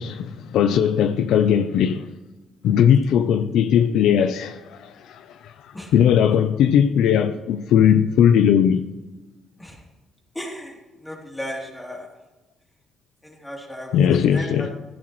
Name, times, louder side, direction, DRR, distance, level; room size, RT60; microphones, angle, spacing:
voice 1, 0.0-2.1 2.6-5.5 5.9-8.9 13.9-14.7, left 8 dB, 85° left, 0.6 m, -18 dB
voice 2, 10.3-10.8 11.0-12.1 13.2-14.7, equal, 10° left, 3.3 m, -35 dB
16.0 x 14.0 x 3.2 m
cardioid pair, 90°, 0 cm